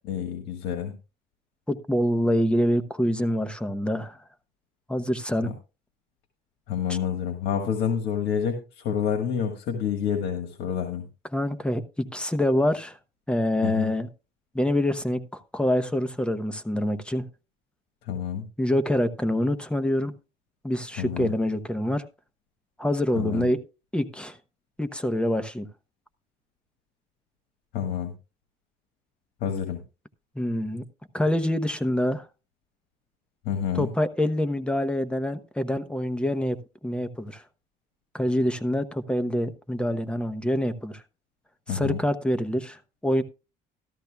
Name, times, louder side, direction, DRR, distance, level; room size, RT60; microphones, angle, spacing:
voice 1, 0.0-0.9 5.4-5.5 6.7-11.1 13.6-13.9 18.1-18.5 21.0-21.3 23.1-23.5 27.7-28.1 29.4-29.8 33.4-33.9 41.7-42.0, left 8 dB, 85° left, 1.5 m, -28 dB
voice 2, 1.7-4.2 4.9-5.5 6.9-7.0 11.3-13.0 13.3-14.1 14.5-17.3 18.6-20.1 20.6-22.0 22.8-23.6 23.9-24.4 24.8-25.7 30.3-30.9 31.1-32.3 33.7-37.4 38.1-41.0 41.7-43.2, left 1 dB, 5° left, 0.9 m, -26 dB
13.5 x 13.0 x 2.3 m
cardioid pair, 110°, 17 cm